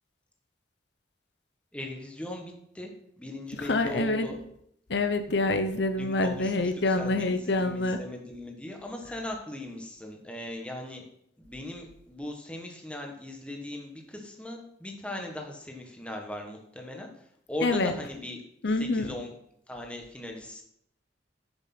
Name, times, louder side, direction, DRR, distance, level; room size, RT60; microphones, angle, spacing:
voice 1, 1.7-4.4 6.0-11.0 11.4-18.4 18.8-19.3 19.7-20.6, left 1 dB, 5° left, 2 dB, 1.3 m, -39 dB
voice 2, 3.7-4.3 4.9-8.0 17.6-17.9 18.6-19.1, left 2 dB, 70° left, 8 dB, 0.8 m, -26 dB
7.3 x 6.4 x 5.9 m, 0.73 s
head